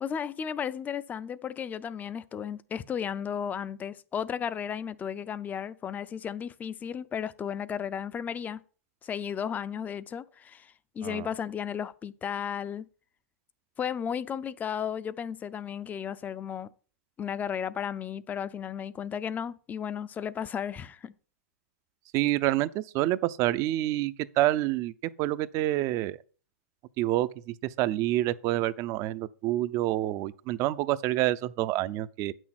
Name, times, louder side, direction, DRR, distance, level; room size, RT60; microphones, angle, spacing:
voice 1, 0.0-8.6 9.0-12.9 13.8-16.7 17.2-21.1, left 8 dB, 20° left, 0.5 m, -34 dB
voice 2, 22.1-26.2 27.0-32.3, right 15 dB, 40° right, 0.6 m, -28 dB
8.6 x 6.3 x 6.0 m
hypercardioid pair, 125°, 8 cm